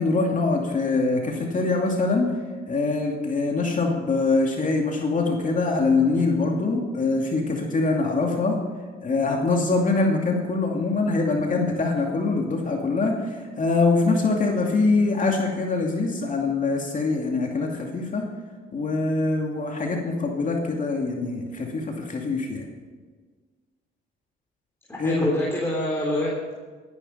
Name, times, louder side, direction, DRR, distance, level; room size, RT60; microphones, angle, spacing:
voice 1, 0.0-2.3 2.7-8.6 9.0-18.2 18.7-22.6 25.0-25.2, left 3 dB, 40° left, 1 dB, 2.6 m, -23 dB
voice 2, 24.9-26.5, left 1 dB, 10° left, -4 dB, 4.0 m, -26 dB
17.0 x 11.0 x 5.7 m, 1.5 s
cardioid pair, 90°, 20 cm